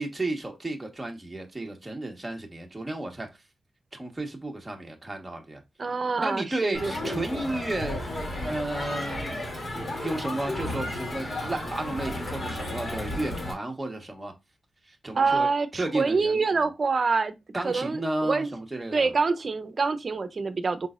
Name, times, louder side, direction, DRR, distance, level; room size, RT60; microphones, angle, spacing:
voice 1, 0.0-3.3 3.9-5.6 6.2-8.0 8.3-9.3 9.7-14.3 14.9-15.5 15.8-16.4 17.5-19.1, right 2 dB, 15° right, 1.5 m, -33 dB
voice 2, 5.8-7.2 15.2-17.3 17.6-18.5 18.9-20.9, right 4 dB, 45° right, 0.7 m, -26 dB
Crowd, 6.7-13.5, left 1 dB, 50° left, 2.5 m, -33 dB
5.3 x 3.8 x 2.5 m
cardioid pair, 90°, 0 cm